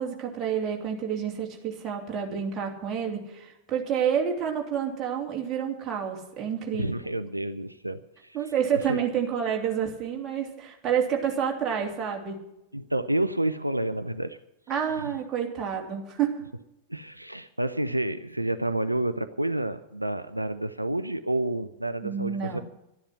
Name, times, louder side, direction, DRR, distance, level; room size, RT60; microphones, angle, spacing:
voice 1, 0.0-6.9 8.3-12.4 14.7-16.4 22.0-22.6, right 8 dB, 30° right, 0 dB, 3.1 m, -29 dB
voice 2, 6.8-8.4 8.9-9.0 12.7-14.4 16.9-22.6, right 1 dB, 85° right, 12 dB, 0.5 m, -29 dB
12.5 x 10.5 x 8.2 m, 0.87 s
figure-of-eight pair, 90°, 0 cm